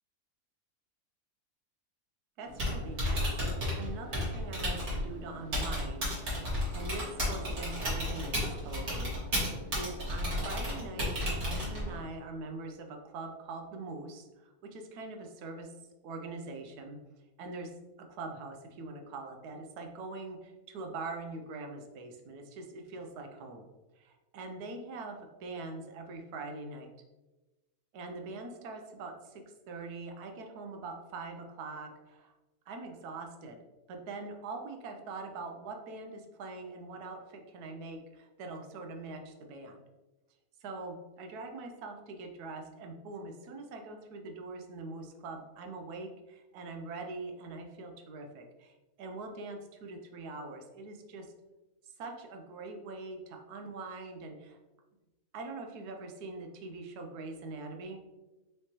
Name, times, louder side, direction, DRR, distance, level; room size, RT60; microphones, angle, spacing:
Typing, 2.4-12.0, equal, 45° right, 1.8 m, -33 dB
voice 1, 2.4-3.3 3.7-6.1 6.7-15.7 16.0-17.0 17.4-17.7 18.0-23.7 24.0-26.9 27.9-32.3 32.7-39.8 40.6-51.3 51.8-54.6 55.3-58.0, right 3 dB, 85° right, 4 dB, 1.2 m, -43 dB
4.9 x 3.1 x 2.8 m, 1.1 s
omnidirectional pair, 1.6 m